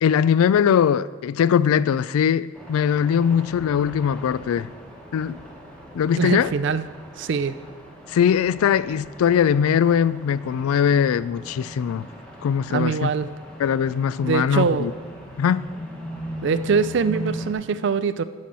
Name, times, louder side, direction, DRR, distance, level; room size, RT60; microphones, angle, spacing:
voice 1, 0.0-4.7 5.1-5.4 5.9-6.5 8.1-12.1 12.4-13.1 13.6-14.9 15.4-15.7, left 8 dB, 85° left, 17 dB, 0.3 m, -21 dB
sound 1, 2.5-17.5, equal, 5° left, 1.2 m, -39 dB
voice 2, 6.1-6.8 7.2-7.5 12.7-13.3 14.2-14.9 16.4-18.2, right 5 dB, 55° right, 14 dB, 0.3 m, -23 dB
11.5 x 4.3 x 7.4 m, 1.5 s
head